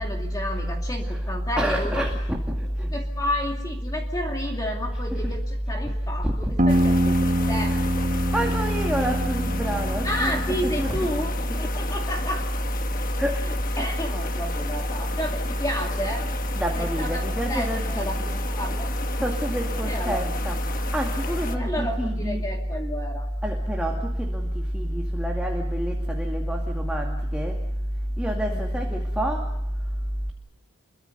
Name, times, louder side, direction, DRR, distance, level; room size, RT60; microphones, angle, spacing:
voice 1, 0.0-2.0 2.9-7.8 10.0-12.5 13.5-16.2 16.8-17.7 18.0-18.9 19.8-20.2 21.5-23.3 28.5-28.8, left 1 dB, 15° left, 1 dB, 2.4 m, -31 dB
voice 2, 1.6-2.4 5.1-5.3 6.2-6.5 7.7-7.8 8.3-11.1 13.2-13.4 16.6-18.4 19.2-20.6 20.9-22.4 23.4-24.5 24.7-27.5 28.2-29.4, equal, 5° right, 0 dB, 2.2 m, -26 dB
sound 1, 6.6-11.3, right 1 dB, 35° right, 1.7 m, -25 dB
sound 2, 6.7-21.6, left 4 dB, 40° left, 1.3 m, -35 dB
28.5 x 23.0 x 6.8 m, 0.80 s
head